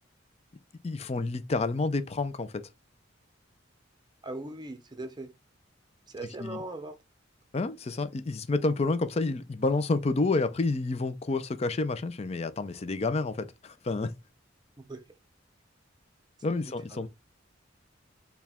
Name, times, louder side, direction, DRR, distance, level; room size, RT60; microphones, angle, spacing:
voice 1, 0.8-2.6 6.4-6.6 7.5-14.1 16.4-17.1, left 3 dB, 35° left, 0.4 m, -29 dB
voice 2, 4.2-5.3 6.1-7.0 14.9-15.0 16.9-17.1, right 2 dB, 20° right, 0.6 m, -39 dB
4.6 x 2.3 x 3.5 m
head